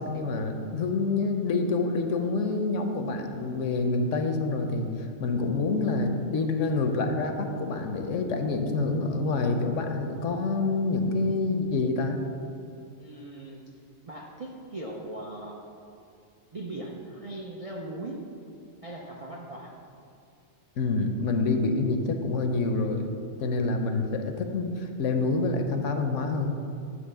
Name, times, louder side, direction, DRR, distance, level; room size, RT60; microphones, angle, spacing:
voice 1, 0.0-12.2 20.8-23.1 23.4-26.6, left 3 dB, 70° left, 5 dB, 1.0 m, -27 dB
voice 2, 13.0-13.6 14.0-15.6 16.5-18.2 18.8-19.7, right 1 dB, 40° right, -1 dB, 0.5 m, -39 dB
9.6 x 3.2 x 6.6 m, 2.4 s
omnidirectional pair, 1.4 m